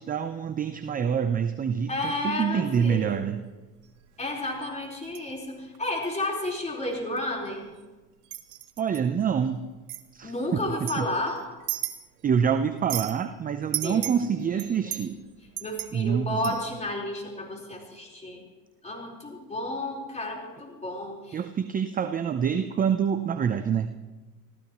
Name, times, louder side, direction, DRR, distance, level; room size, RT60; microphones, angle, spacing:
voice 1, 0.0-3.4 8.8-9.7 10.1-10.3 10.8-11.1 12.2-15.2 15.9-16.6 21.3-24.0, right 7 dB, 20° right, 10 dB, 0.6 m, -26 dB
voice 2, 1.9-3.2 4.2-7.7 10.2-11.4 13.8-14.0 14.4-14.8 15.6-18.4 18.8-21.4, left 1 dB, 15° left, -1 dB, 4.3 m, -32 dB
sound 1, 2.4-2.7 3.9-4.1 4.6-5.3 5.7-5.8 6.4-6.6 6.9-7.8 8.2-9.0 9.9-10.0 10.7-12.4 12.6-13.2 13.7-16.8, right 13 dB, 70° right, 1.2 m, -36 dB
26.0 x 15.0 x 3.1 m, 1.2 s
hypercardioid pair, 95°, 46 cm